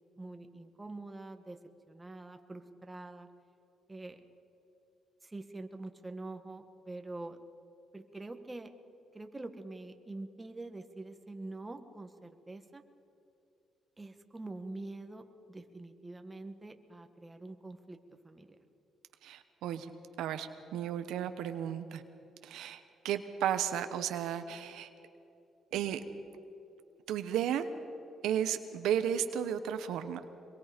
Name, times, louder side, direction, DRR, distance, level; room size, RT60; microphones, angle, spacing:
voice 1, 0.2-1.6 1.9-3.3 3.9-4.2 5.2-7.4 7.9-8.7 9.1-12.8 14.0-18.0 18.2-18.6, right 2 dB, 15° right, 6 dB, 1.7 m, -45 dB
voice 2, 19.2-19.9 20.2-22.0 22.4-24.9 25.7-26.0 27.1-27.7 28.2-30.2, right 9 dB, 85° right, 9 dB, 1.0 m, -34 dB
24.0 x 22.5 x 5.2 m, 2.8 s
cardioid pair, 90°, 0 cm